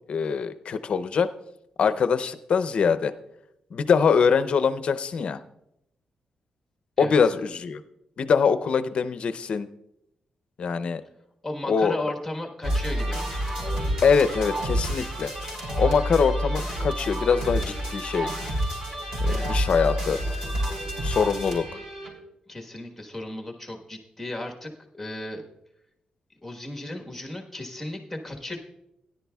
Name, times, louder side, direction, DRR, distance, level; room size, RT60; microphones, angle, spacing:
voice 1, 0.1-1.3 1.8-3.1 3.7-5.4 7.0-7.8 8.2-9.7 10.6-11.0 11.7-11.9 14.0-15.3 15.8-18.3 19.2-20.2 21.0-21.8, left 6 dB, 50° left, 13 dB, 0.5 m, -23 dB
voice 2, 11.4-13.2 19.2-19.6 22.5-25.4 26.4-28.6, left 1 dB, 5° left, 1 dB, 1.3 m, -35 dB
sound 1, 12.6-22.1, equal, 25° right, 3.8 m, -28 dB
17.5 x 10.5 x 2.3 m, 0.84 s
wide cardioid pair, 165°, 2 cm